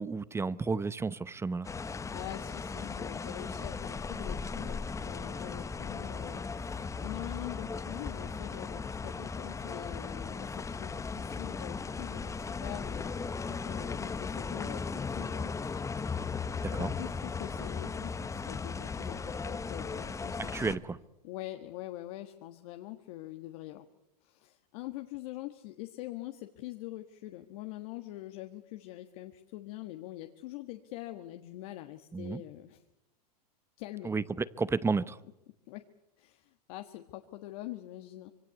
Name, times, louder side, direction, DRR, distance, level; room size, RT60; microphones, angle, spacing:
voice 1, 0.0-1.7 16.6-16.9 20.5-21.0 32.1-32.4 34.0-35.2, right 4 dB, 10° right, 18 dB, 0.9 m, -32 dB
sound 1, 1.6-20.8, left 5 dB, 15° left, 1.2 m, -37 dB
voice 2, 1.8-15.8 16.7-20.8 21.2-23.9 24.2-32.8 33.8-34.1 35.7-35.8 36.2-38.3, left 15 dB, 60° left, 5 dB, 1.6 m, -44 dB
25.5 x 22.5 x 8.3 m, 0.85 s
hypercardioid pair, 110°, 21 cm